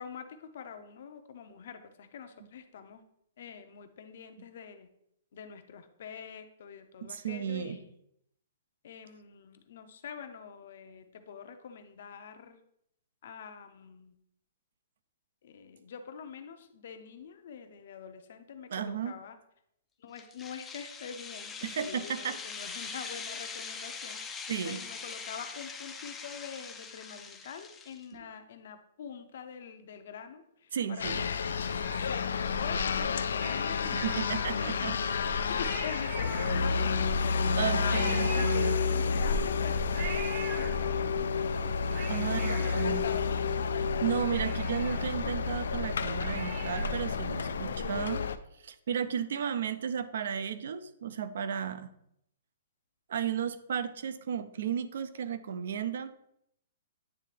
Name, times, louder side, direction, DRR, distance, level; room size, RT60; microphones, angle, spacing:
voice 1, 0.0-3.0 3.4-4.9 5.3-7.9 8.8-12.6 13.2-14.2 15.4-19.4 20.0-31.4 31.7-41.7 42.0-43.4, left 7 dB, 55° left, 8 dB, 0.7 m, -45 dB
voice 2, 7.0-7.8 18.7-19.2 21.6-22.4 24.5-24.8 30.7-31.3 33.9-34.9 35.3-35.5 37.6-38.8 42.1-43.0 44.0-48.2 48.6-51.9 53.1-56.1, right 8 dB, 60° right, 13 dB, 0.5 m, -34 dB
sound 1, 20.2-28.0, left 5 dB, 10° left, 0.4 m, -42 dB
sound 2, 31.0-48.4, left 5 dB, 85° left, 0.4 m, -30 dB
Cat, 31.0-32.5 33.3-34.8 35.2-35.3 35.5-37.0 37.9-39.2 39.9-41.2 41.7-43.7 44.0-44.1 44.3-47.1 47.5-47.6, right 4 dB, 40° right, 0.9 m, -43 dB
9.0 x 3.3 x 3.3 m, 0.75 s
hypercardioid pair, 170°, 0 cm